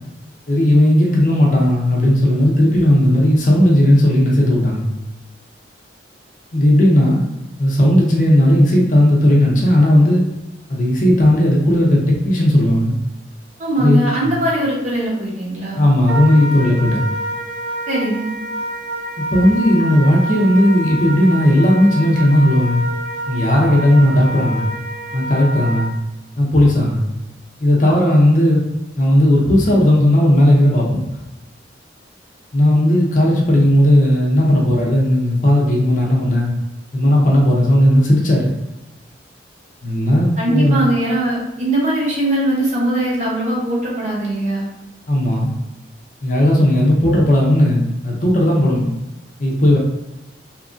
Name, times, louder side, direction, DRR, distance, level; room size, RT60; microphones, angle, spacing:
voice 1, 0.5-4.9 6.5-7.2 7.6-10.2 10.7-13.0 13.8-14.3 15.8-17.1 19.2-22.8 23.3-24.7 25.1-25.9 26.4-27.0 27.6-28.6 29.0-31.0 32.5-36.5 36.9-38.5 39.8-40.8 45.1-45.5 46.2-48.9 49.4-49.8, left 1 dB, 45° left, -2 dB, 0.6 m, -15 dB
voice 2, 13.6-15.9 17.9-18.3 40.4-44.7, right 1 dB, 40° right, -5 dB, 0.9 m, -20 dB
Wind instrument woodwind instrument, 16.1-25.9, right 1 dB, 90° right, 0.4 m, -27 dB
2.8 x 2.4 x 2.5 m, 0.97 s
head